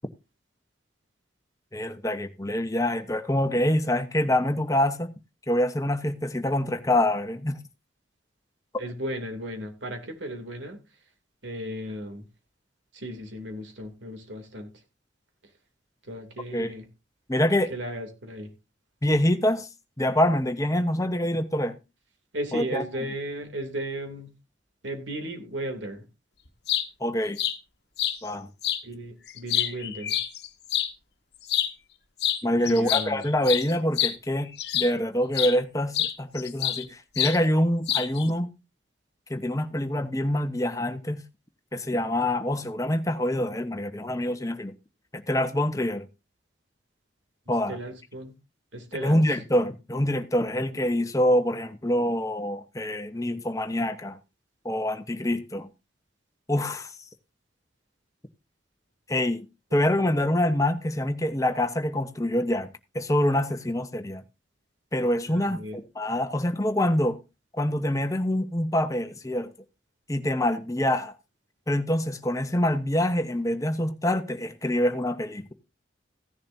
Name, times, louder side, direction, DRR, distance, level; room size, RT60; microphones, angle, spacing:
voice 1, 1.7-5.1 5.5-7.6 16.5-16.7 17.3-17.7 19.0-19.7 20.0-21.8 22.5-22.8 27.0-27.4 28.2-28.5 32.4-38.5 39.3-41.2 41.7-44.7 45.1-46.1 47.5-47.8 49.0-54.2 54.6-55.7 56.5-56.9 59.1-59.4 59.7-64.2 64.9-67.2 67.5-69.5 70.1-71.1 71.7-75.5, left 1 dB, 15° left, 1.0 m, -25 dB
voice 2, 8.8-10.8 11.4-12.2 12.9-14.7 16.1-16.9 17.7-18.5 22.3-24.3 24.8-26.0 28.8-30.2 32.6-33.2 47.7-48.4 48.7-49.2 59.9-60.1 65.3-65.8, right 1 dB, 85° right, 2.9 m, -35 dB
sound 1, 26.5-26.9 27.4-27.6 28.0-28.2 28.6-28.8 29.3-30.9 31.4-31.7 32.2-32.4 32.7-35.0 35.3-35.6 35.9-36.8 37.2-37.4 37.9-38.3, left 11 dB, 60° left, 1.3 m, -27 dB
16.0 x 10.5 x 2.7 m
head